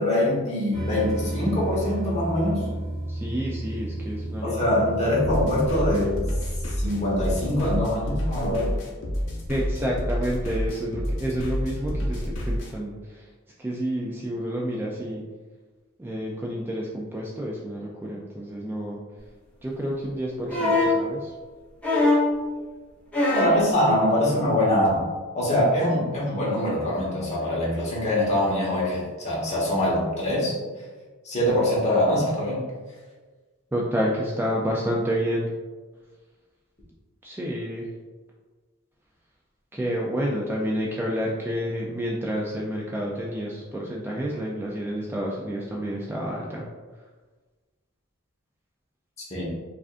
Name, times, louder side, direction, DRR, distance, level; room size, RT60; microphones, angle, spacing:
voice 1, 0.0-2.7 4.4-6.1 6.7-8.8 23.3-25.1 25.3-30.5 31.2-32.6 49.3-49.4, left 1 dB, 35° left, -6 dB, 1.2 m, -23 dB
sound 1, 0.7-7.8, right 1 dB, 25° right, 0.8 m, -33 dB
voice 2, 3.1-4.8 9.5-13.3 13.6-15.2 16.0-19.0 19.6-21.3 33.7-35.5 37.2-37.9 39.7-46.7, equal, 10° right, -3 dB, 0.3 m, -29 dB
sound 2, 5.2-12.7, equal, 65° left, 0.8 m, -29 dB
sound 3, 20.5-21.0 21.8-22.4 23.1-23.6 24.8-24.9, left 2 dB, 5° left, 0.9 m, -21 dB
4.9 x 2.4 x 2.5 m, 1.3 s
head